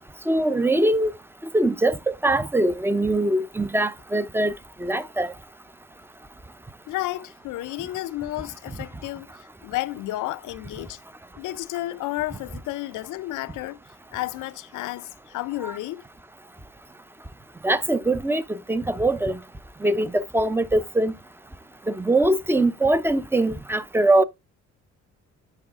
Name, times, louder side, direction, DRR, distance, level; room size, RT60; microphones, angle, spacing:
voice 1, 0.3-1.1 1.5-4.5 4.8-5.3 15.6-15.7 17.6-19.4 19.8-21.1 21.9-24.2, right 1 dB, 10° right, 0.5 m, -22 dB
voice 2, 6.9-11.0 11.4-13.8 14.1-16.0, left 16 dB, 80° left, 0.5 m, -32 dB
9.0 x 4.1 x 3.5 m
cardioid pair, 90°, 30 cm